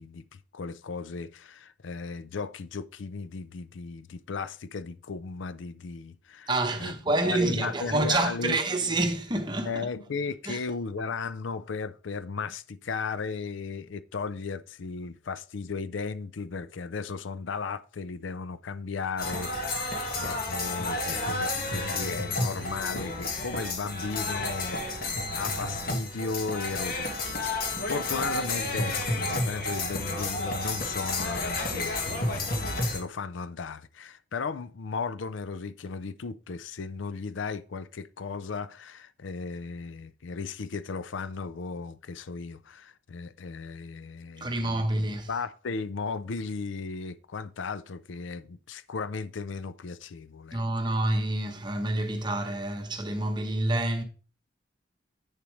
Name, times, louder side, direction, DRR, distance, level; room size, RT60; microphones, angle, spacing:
voice 1, 0.0-6.5 6.8-6.9 7.2-8.6 9.7-44.9 45.3-50.8, left 4 dB, 80° left, 0.5 m, -36 dB
voice 2, 6.5-9.9 10.5-10.6 44.4-45.3 50.5-54.0, right 2 dB, 25° right, 1.0 m, -28 dB
sound 1, 19.2-33.0, left 2 dB, 50° left, 1.6 m, -31 dB
8.3 x 6.9 x 3.1 m
head